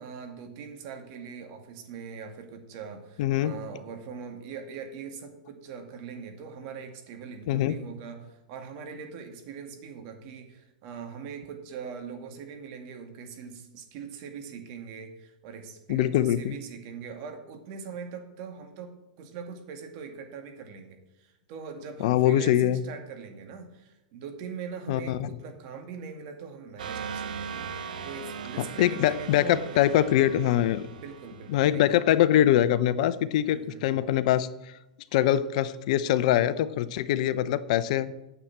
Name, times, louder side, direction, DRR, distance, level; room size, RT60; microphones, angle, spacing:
voice 1, 0.0-27.6 28.0-30.1 30.9-31.8 33.4-34.0, right 6 dB, 50° right, 5 dB, 2.2 m, -42 dB
voice 2, 3.2-3.6 7.5-7.8 15.9-16.5 22.0-22.8 24.9-25.3 28.8-30.9 31.5-34.5 35.1-38.1, left 12 dB, 60° left, 15 dB, 0.7 m, -23 dB
sound 1, 26.8-32.2, right 6 dB, 75° right, 1.1 m, -39 dB
9.7 x 7.3 x 7.5 m, 0.94 s
hypercardioid pair, 115°, 4 cm